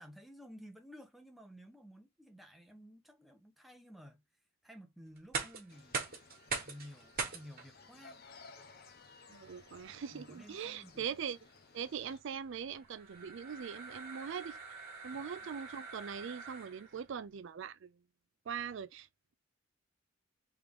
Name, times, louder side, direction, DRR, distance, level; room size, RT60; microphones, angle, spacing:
voice 1, 0.0-4.2 4.6-6.1 6.6-8.2 10.1-11.2 15.1-15.5, equal, ahead, 0.9 m, -54 dB
sound 1, 5.2-17.0, right 4 dB, 50° right, 1.4 m, -44 dB
sound 2, 5.7-12.2, left 4 dB, 50° left, 0.8 m, -58 dB
voice 2, 9.3-11.4 11.7-14.6 15.0-17.9 18.5-19.1, right 7 dB, 65° right, 0.4 m, -41 dB
3.6 x 3.3 x 3.6 m
head